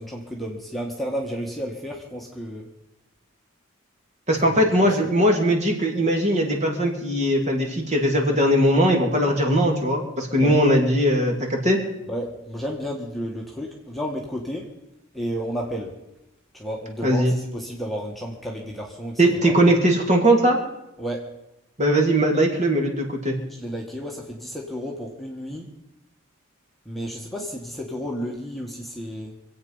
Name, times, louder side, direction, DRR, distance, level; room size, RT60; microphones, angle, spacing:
voice 1, 0.0-2.7 4.5-4.6 10.4-10.6 12.1-14.7 15.1-16.0 16.5-19.6 21.0-21.3 23.6-25.7 26.9-29.3, equal, ahead, -2 dB, 1.7 m, -32 dB
voice 2, 4.3-11.8 17.0-17.3 19.2-20.6 21.8-23.3, right 1 dB, 35° right, 2 dB, 2.7 m, -20 dB
25.5 x 8.5 x 5.6 m, 0.90 s
head